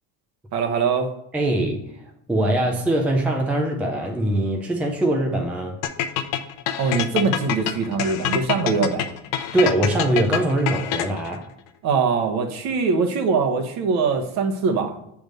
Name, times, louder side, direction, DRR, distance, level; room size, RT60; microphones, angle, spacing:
voice 1, 0.5-1.1 6.8-9.1 11.8-15.0, right 5 dB, 50° right, 5 dB, 1.1 m, -22 dB
voice 2, 1.3-2.0 2.3-5.8 9.5-11.5, right 1 dB, 5° right, 1 dB, 0.4 m, -22 dB
sound 1, 5.8-11.4, left 11 dB, 80° left, 0.8 m, -26 dB
7.7 x 3.5 x 6.5 m, 0.78 s
cardioid pair, 170°, 35 cm